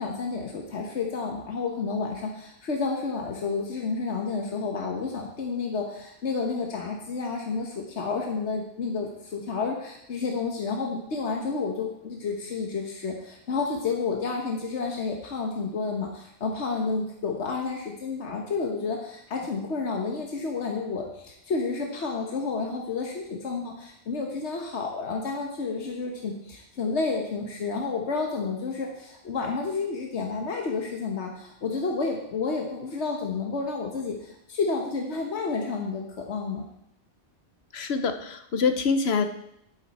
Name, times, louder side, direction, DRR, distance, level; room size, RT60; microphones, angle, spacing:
voice 1, 0.0-36.6, left 4 dB, 85° left, 1 dB, 1.5 m, -30 dB
voice 2, 37.7-39.2, left 5 dB, 70° left, 8 dB, 1.1 m, -25 dB
10.5 x 9.7 x 4.2 m, 0.77 s
omnidirectional pair, 1.1 m